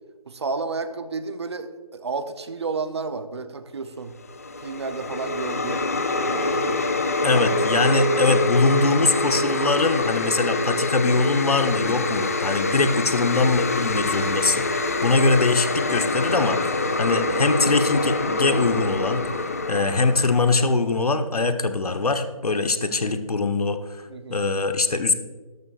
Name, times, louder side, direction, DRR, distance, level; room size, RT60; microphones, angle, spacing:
voice 1, 0.3-4.1 4.6-5.8 6.3-6.9 24.1-24.5, right 4 dB, 45° right, 10 dB, 0.7 m, -31 dB
sound 1, 4.2-20.7, left 2 dB, 25° left, 0.5 m, -25 dB
voice 2, 7.2-25.1, left 3 dB, 80° left, 8 dB, 1.1 m, -22 dB
13.0 x 12.0 x 2.5 m, 1.3 s
figure-of-eight pair, 165°, 19 cm